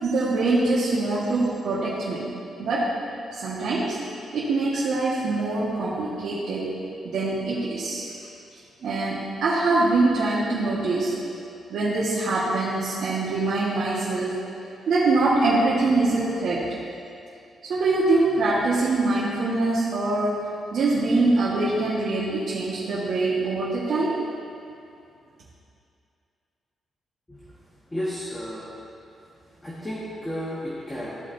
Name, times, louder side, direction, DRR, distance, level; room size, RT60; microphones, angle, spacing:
voice 1, 0.0-2.3 2.6-2.9 3.3-4.0 4.3-6.8 7.0-8.1 8.8-11.2 11.7-14.4 14.9-16.8 17.7-24.2, right 2 dB, 70° right, -8 dB, 1.4 m, -24 dB
voice 2, 27.9-28.7 29.6-31.2, equal, 15° left, -7 dB, 1.3 m, -32 dB
14.0 x 5.0 x 2.6 m, 2.5 s
cardioid pair, 105°, 0 cm